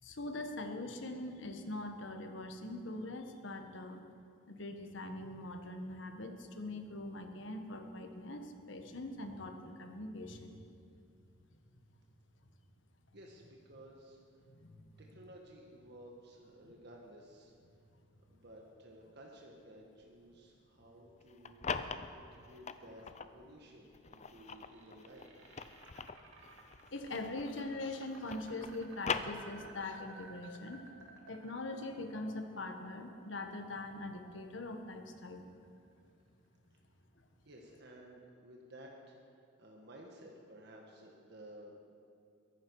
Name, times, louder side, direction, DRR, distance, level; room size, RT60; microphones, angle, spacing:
voice 1, 0.0-4.0 4.5-10.6 14.6-14.9 26.9-30.8 31.3-35.4, left 2 dB, 65° left, 5 dB, 1.4 m, -42 dB
voice 2, 13.1-14.2 15.0-17.5 18.3-21.6 22.1-25.4 37.4-41.7, right 1 dB, 55° right, -1 dB, 1.6 m, -55 dB
sound 1, 21.2-23.3 23.9-27.7 27.9-29.9, left 5 dB, 35° left, 0.6 m, -41 dB
sound 2, 24.0-36.1, right 3 dB, 85° right, 1.9 m, -58 dB
22.0 x 11.5 x 4.8 m, 2.4 s
head